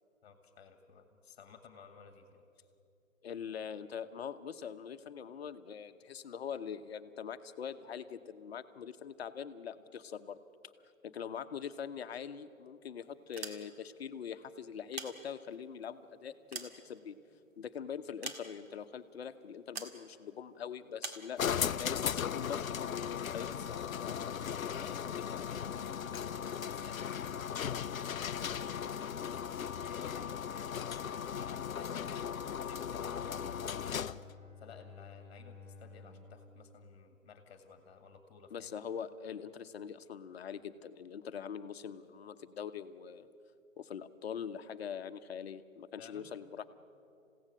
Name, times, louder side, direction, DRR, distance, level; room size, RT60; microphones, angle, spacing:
voice 1, 0.2-2.7 23.3-27.7 28.0-29.4 29.8-34.2 34.6-38.7 46.0-46.3, left 6 dB, 35° left, 8 dB, 1.7 m, -54 dB
voice 2, 3.2-10.4 11.0-17.2 17.6-23.5 38.5-43.3 43.8-46.7, left 7 dB, 50° left, 11 dB, 1.0 m, -43 dB
sound 1, 13.2-14.0 14.7-15.7 16.2-17.4 18.2-18.9 19.7-20.0 21.0-21.3, right 4 dB, 50° right, 2.0 m, -44 dB
sound 2, 21.4-34.3, left 8 dB, 80° left, 0.6 m, -37 dB
Bowed string instrument, 32.9-37.9, left 4 dB, ahead, 4.3 m, -55 dB
28.5 x 16.5 x 6.5 m, 2.6 s
figure-of-eight pair, 130°, 40 cm